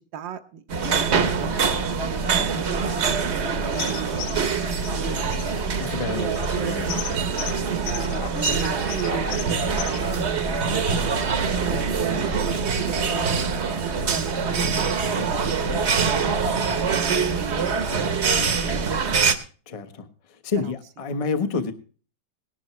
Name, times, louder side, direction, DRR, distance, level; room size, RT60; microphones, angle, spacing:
voice 1, 0.1-0.6 0.9-1.6 1.9-3.4 3.7-5.5 6.1-6.8 7.5-14.9 15.3-15.6 15.9-17.7 18.0-19.4 20.6-20.7, right 7 dB, 75° right, 6 dB, 1.6 m, -36 dB
sound 1, 0.7-19.3, right 5 dB, 45° right, 1.1 m, -24 dB
sound 2, 3.7-10.1, left 9 dB, 85° left, 1.7 m, -36 dB
voice 2, 5.8-6.3 6.6-7.0 15.1-15.5 17.6-18.0 19.7-20.1 20.4-21.7, left 4 dB, 25° left, 9 dB, 0.8 m, -29 dB
Drum kit, 9.6-16.9, left 2 dB, 65° left, 3.5 m, -40 dB
18.5 x 11.5 x 3.1 m, 0.38 s
omnidirectional pair, 2.0 m